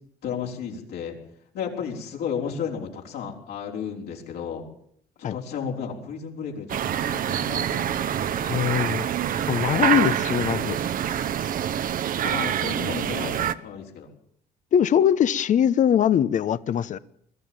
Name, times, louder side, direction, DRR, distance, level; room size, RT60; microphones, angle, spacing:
voice 1, 0.2-1.2 1.5-4.6 5.2-8.7 12.2-14.1, left 7 dB, 75° left, 4.9 m, -33 dB
sound 1, 6.7-13.5, right 10 dB, 55° right, 1.0 m, -26 dB
voice 2, 8.5-9.1 9.5-10.8 14.7-17.0, left 9 dB, 50° left, 0.8 m, -21 dB
22.0 x 13.5 x 9.0 m
cardioid pair, 110°, 17 cm